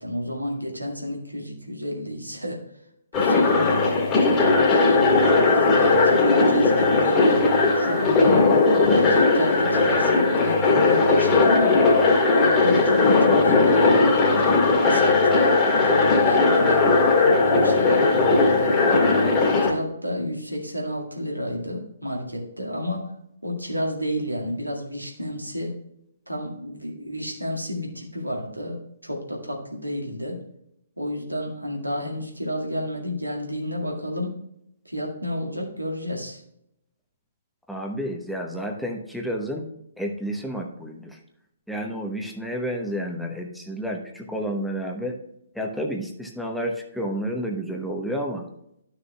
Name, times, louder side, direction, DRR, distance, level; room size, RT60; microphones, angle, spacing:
voice 1, 0.0-2.6 3.1-11.8 12.3-15.3 15.8-19.1 19.6-23.1 23.4-25.8 26.3-30.4 31.0-34.4 34.9-36.4, equal, 90° right, -1 dB, 1.9 m, -31 dB
sound 1, 3.1-19.7, left 3 dB, 20° left, 2.1 m, -18 dB
voice 2, 37.7-39.7 40.0-41.2 41.7-45.2 45.5-48.5, equal, ahead, 1 dB, 0.9 m, -30 dB
12.0 x 6.4 x 2.3 m, 0.78 s
figure-of-eight pair, 130°, 0 cm